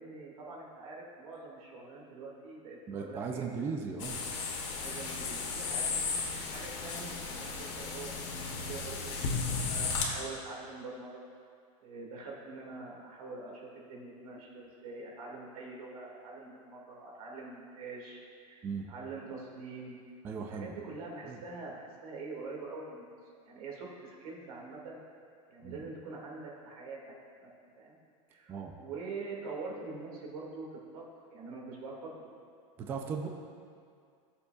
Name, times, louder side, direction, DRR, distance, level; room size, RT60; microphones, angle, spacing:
voice 1, 0.0-3.5 4.7-5.9 6.4-11.2 11.8-20.0 20.5-23.2 23.4-25.0 25.5-27.0 27.4-27.5 27.8-28.0 28.3-30.7 30.9-32.3, right 3 dB, 90° right, -2 dB, 2.1 m, -44 dB
voice 2, 2.9-4.2 18.6-18.9 20.2-20.7 21.3-21.4 25.6-25.8 28.5-28.7 32.8-33.3, right 5 dB, 10° right, 2 dB, 0.3 m, -37 dB
sound 1, 4.0-10.0, left 4 dB, 55° left, 1.5 m, -35 dB
16.0 x 7.0 x 2.4 m, 2.3 s
supercardioid pair, 180°, 18 cm